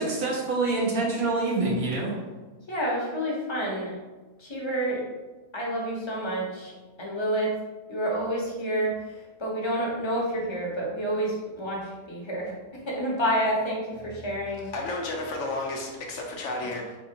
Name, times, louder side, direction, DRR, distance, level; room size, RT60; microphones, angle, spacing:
voice 1, 0.0-2.1, right 3 dB, 70° right, 1.6 m, -26 dB
voice 2, 2.7-3.9 4.4-5.0 5.5-6.7 7.0-7.5 7.9-8.9 9.4-12.5 12.9-14.7, right 1 dB, 20° left, 0.9 m, -28 dB
voice 3, 14.7-17.0, left 2 dB, 60° left, 0.9 m, -32 dB
4.1 x 4.1 x 2.8 m
omnidirectional pair, 1.6 m